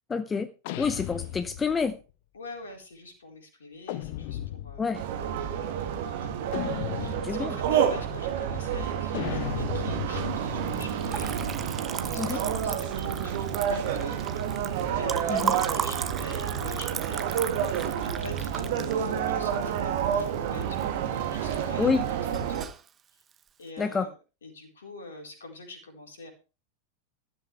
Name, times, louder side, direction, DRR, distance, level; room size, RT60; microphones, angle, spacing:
voice 1, 0.1-0.5 0.8-2.0 4.8-5.0 7.2-7.5 12.2-12.4 15.3-15.5 21.8-22.1 23.8-24.1, left 5 dB, 15° left, 12 dB, 0.8 m, -27 dB
sound 1, 0.6-1.9 3.9-5.0 6.5-7.6 9.1-11.8, left 14 dB, 50° left, 0.9 m, -36 dB
voice 2, 2.3-4.9 6.2-6.7 7.0-11.4 12.1-14.2 14.9-21.0 21.3-22.7 23.6-24.1 24.4-26.3, left 2 dB, 65° left, 2 dB, 4.4 m, -44 dB
sound 2, 4.9-22.7, right 8 dB, 55° right, 2.0 m, -29 dB
Liquid, 10.6-20.8 21.2-21.8 22.1-22.9, right 8 dB, 25° right, 1.0 m, -36 dB
13.5 x 13.5 x 3.4 m, 0.33 s
figure-of-eight pair, 90°, 0 cm